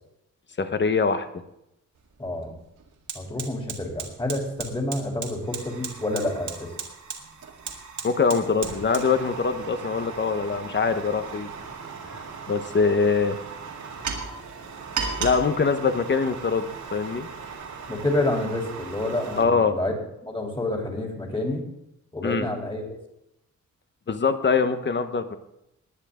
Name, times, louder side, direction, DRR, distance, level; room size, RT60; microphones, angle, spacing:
voice 1, 0.6-1.4 8.0-11.5 12.1-13.4 15.2-17.3 19.4-19.8 22.2-22.5 24.1-25.4, left 5 dB, 35° left, 9 dB, 1.1 m, -23 dB
Fire, 2.0-2.1 2.4-19.4, right 5 dB, 75° right, 2.2 m, -36 dB
voice 2, 2.2-2.6 3.1-6.7 17.9-19.9 20.2-21.6 22.1-22.9, left 1 dB, 15° left, 1 dB, 3.2 m, -28 dB
19.5 x 9.4 x 3.7 m, 0.83 s
wide cardioid pair, 145°, 30 cm